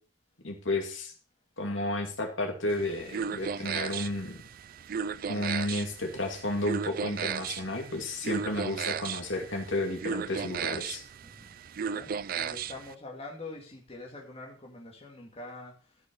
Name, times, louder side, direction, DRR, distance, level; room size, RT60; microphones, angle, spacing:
voice 1, 0.4-1.1 1.6-4.4 5.3-11.0, left 2 dB, 75° left, 2 dB, 2.4 m, -32 dB
sound 1, 2.7-12.9, right 7 dB, 45° right, 0.4 m, -36 dB
voice 2, 11.9-15.7, left 2 dB, 30° left, -1 dB, 2.3 m, -44 dB
12.5 x 6.0 x 5.4 m, 0.40 s
head